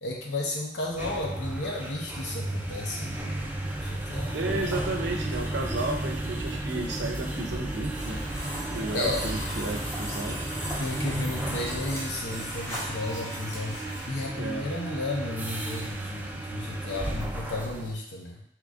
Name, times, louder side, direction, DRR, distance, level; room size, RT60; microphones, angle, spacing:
voice 1, 0.0-4.3 8.9-9.3 10.8-18.4, left 2 dB, 75° left, -1 dB, 0.8 m, -33 dB
sound 1, 0.8-18.0, right 1 dB, 10° right, 0.3 m, -34 dB
voice 2, 4.3-8.2 8.7-10.4 14.3-14.7, right 2 dB, 80° right, 2 dB, 0.6 m, -33 dB
sound 2, 8.0-14.1, equal, 15° left, 0.9 m, -38 dB
3.8 x 2.9 x 2.4 m, 0.65 s
head